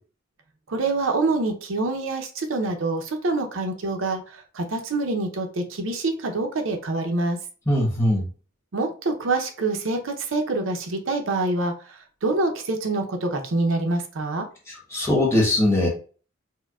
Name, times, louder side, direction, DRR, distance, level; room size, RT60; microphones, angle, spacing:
voice 1, 0.7-7.4 8.7-14.5, right 2 dB, 85° right, 5 dB, 0.7 m, -26 dB
voice 2, 7.7-8.2 14.9-15.9, left 1 dB, 15° left, -3 dB, 1.0 m, -20 dB
4.4 x 2.1 x 2.3 m, 0.38 s
head